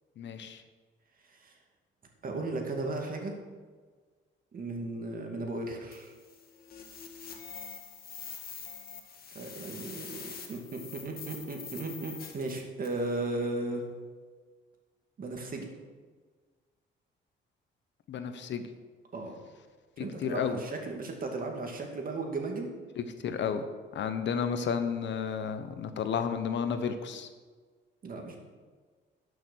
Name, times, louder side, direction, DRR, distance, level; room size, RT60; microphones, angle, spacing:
voice 1, 0.2-0.6 18.1-18.7 20.0-20.6 23.0-23.7 23.9-27.3, left 7 dB, 65° left, 9 dB, 1.0 m, -32 dB
voice 2, 2.2-3.4 4.5-6.1 9.3-13.8 15.2-15.7 19.1-19.3 20.0-22.7 28.0-28.4, right 2 dB, 45° right, 2 dB, 2.3 m, -36 dB
sound 1, 5.9-13.1, left 6 dB, 50° left, 1.8 m, -45 dB
11.5 x 6.6 x 6.3 m, 1.5 s
cardioid pair, 90°, 20 cm